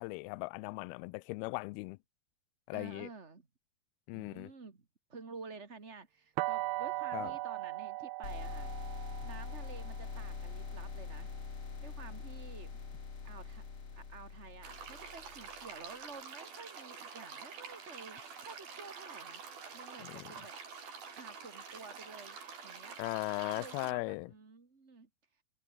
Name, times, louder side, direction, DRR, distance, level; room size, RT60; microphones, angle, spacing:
voice 1, 0.0-2.0 2.7-3.1 4.1-4.5 7.1-7.3 20.0-20.3 23.0-24.3, left 25 dB, 85° left, 2.4 m, -38 dB
voice 2, 2.7-3.5 4.1-8.7 9.2-11.3 11.8-12.8 13.2-13.6 13.9-20.5 21.0-23.0 23.5-25.1, right 4 dB, 30° right, 1.4 m, -51 dB
sound 1, 6.4-12.2, right 19 dB, 85° right, 2.8 m, -40 dB
sound 2, 8.2-15.8, left 5 dB, 40° left, 4.2 m, -44 dB
sound 3, 14.6-23.9, right 5 dB, 65° right, 6.6 m, -47 dB
omnidirectional pair, 4.6 m